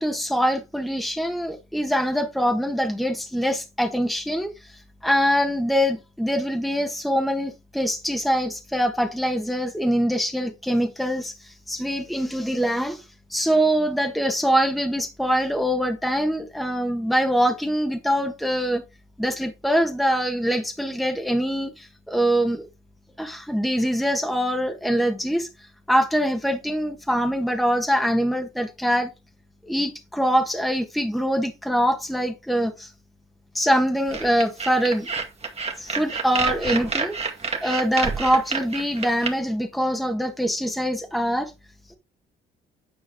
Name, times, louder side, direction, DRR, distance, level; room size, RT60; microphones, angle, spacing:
voice 1, 0.0-4.7 5.0-13.0 13.3-18.8 19.2-22.7 23.2-25.5 25.9-29.1 29.6-32.9 33.5-35.1 35.8-37.1 37.6-41.5, equal, ahead, 1.3 m, -24 dB
sound 1, 34.1-39.3, right 4 dB, 30° right, 1.9 m, -28 dB
9.5 x 4.6 x 3.5 m
cardioid pair, 90°, 20 cm